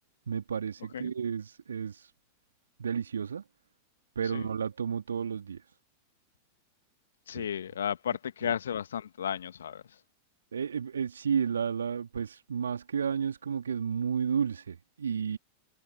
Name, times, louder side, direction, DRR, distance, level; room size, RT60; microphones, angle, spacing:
voice 1, 0.3-2.1 2.8-3.4 4.2-5.6 7.3-7.5 8.4-8.5 10.5-15.4, right 7 dB, 70° right, 2.0 m, -32 dB
voice 2, 7.3-10.0, left 9 dB, 65° left, 1.9 m, -34 dB
figure-of-eight pair, 90°, 0 cm